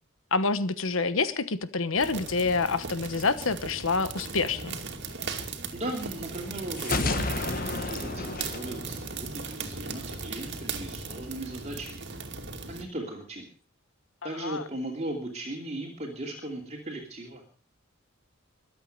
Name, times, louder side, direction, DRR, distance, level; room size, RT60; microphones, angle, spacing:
voice 1, 0.3-4.8 14.2-14.6, left 4 dB, 75° left, 13 dB, 1.2 m, -27 dB
sound 1, 2.0-12.8, right 4 dB, 55° right, 2.5 m, -38 dB
voice 2, 5.7-12.1 12.7-13.5 14.2-17.4, right 1 dB, 30° right, 1 dB, 2.8 m, -37 dB
sound 2, 6.8-9.6, left 3 dB, 45° left, 1.4 m, -31 dB
23.0 x 8.5 x 6.7 m, 0.40 s
head